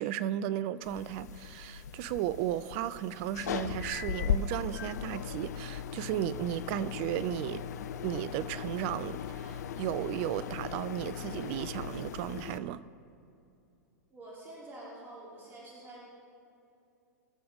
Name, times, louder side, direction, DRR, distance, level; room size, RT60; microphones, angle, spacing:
voice 1, 0.0-7.6 8.0-12.8, right 12 dB, 45° right, 16 dB, 0.5 m, -34 dB
sound 1, 0.8-12.6, left 8 dB, 70° left, 0.6 m, -38 dB
voice 2, 14.1-16.1, right 1 dB, 25° right, -6 dB, 3.2 m, -47 dB
22.0 x 7.7 x 3.7 m, 2.7 s
hypercardioid pair, 105°, 9 cm